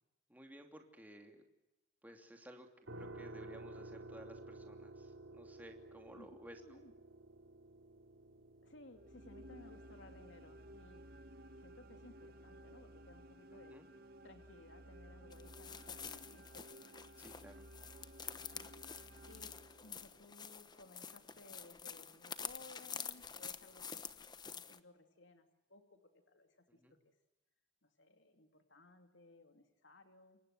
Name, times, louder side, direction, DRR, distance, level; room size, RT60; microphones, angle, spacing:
voice 1, 0.3-1.4 2.0-6.8 13.7-13.9 17.2-17.7 26.7-27.0, equal, 10° right, 3 dB, 2.8 m, -56 dB
sound 1, 2.9-15.7, right 2 dB, 80° right, 3.6 m, -55 dB
voice 2, 6.6-6.9 8.6-11.0 11.6-13.8 14.2-16.8 18.5-19.5 19.8-24.1 24.4-26.8 27.0-27.1 27.8-30.4, left 2 dB, 70° left, 6 dB, 2.6 m, -60 dB
sound 2, 8.9-20.2, right 1 dB, 50° right, 1.6 m, -56 dB
sound 3, 15.3-24.8, left 7 dB, 20° left, 1.0 m, -48 dB
29.0 x 24.0 x 7.9 m, 0.96 s
head